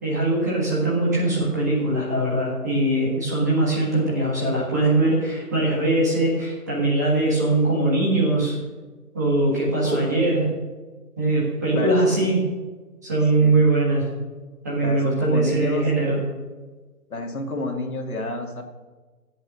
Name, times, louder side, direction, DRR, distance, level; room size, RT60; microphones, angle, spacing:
voice 1, 0.0-8.6 9.1-10.5 11.2-12.5 13.0-14.1 14.6-16.2, right 2 dB, 10° right, -6 dB, 1.6 m, -21 dB
voice 2, 14.8-15.9 17.1-18.6, left 2 dB, 60° left, 2 dB, 2.7 m, -29 dB
17.5 x 8.0 x 6.4 m, 1.3 s
figure-of-eight pair, 170°, 48 cm